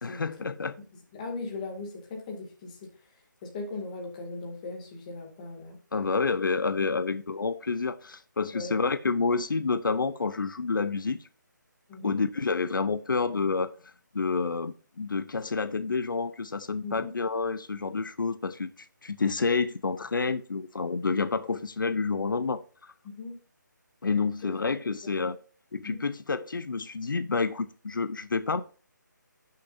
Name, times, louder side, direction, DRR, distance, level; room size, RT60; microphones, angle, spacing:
voice 1, 0.0-0.7 5.9-11.2 12.0-13.7 14.1-18.7 19.0-22.9 24.0-25.4 25.7-28.6, left 4 dB, 85° left, 0.7 m, -29 dB
voice 2, 1.1-2.9 3.4-5.8 8.5-8.8 11.9-12.2 16.8-17.1 23.0-23.3 24.4-24.5 25.8-26.0, left 3 dB, 20° left, 2.2 m, -38 dB
11.5 x 6.8 x 2.7 m
hypercardioid pair, 165°, 11 cm